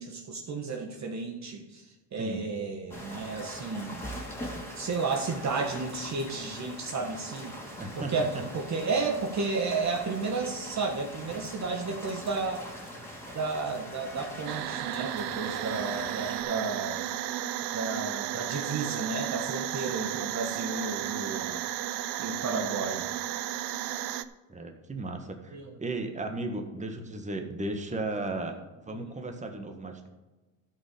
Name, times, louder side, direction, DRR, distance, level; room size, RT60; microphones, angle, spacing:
voice 1, 0.0-4.1 4.8-7.5 8.0-12.7 13.3-17.0 17.7-21.7 22.2-23.1 25.5-25.7 28.9-29.1, right 4 dB, 40° right, 2 dB, 1.5 m, -32 dB
sound 1, 2.9-16.4, equal, 5° left, 2.9 m, -42 dB
voice 2, 7.8-8.1 24.5-28.6 28.9-30.1, right 2 dB, 15° right, 4 dB, 1.8 m, -35 dB
sound 2, 14.5-24.2, right 12 dB, 65° right, 0.7 m, -33 dB
12.5 x 5.4 x 6.9 m, 1.2 s
supercardioid pair, 95°, 44 cm